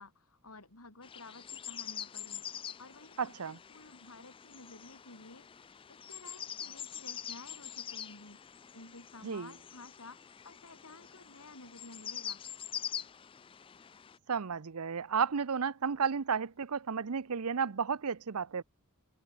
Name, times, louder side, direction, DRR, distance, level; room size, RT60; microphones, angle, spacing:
voice 1, 0.0-2.4 2.8-12.4, left 2 dB, 75° left, 4.9 m, -53 dB
sound 1, 1.0-14.2, left 9 dB, 25° left, 0.3 m, -45 dB
voice 2, 3.2-3.6 9.2-9.5 14.3-18.6, right 6 dB, 80° right, 0.7 m, -33 dB
head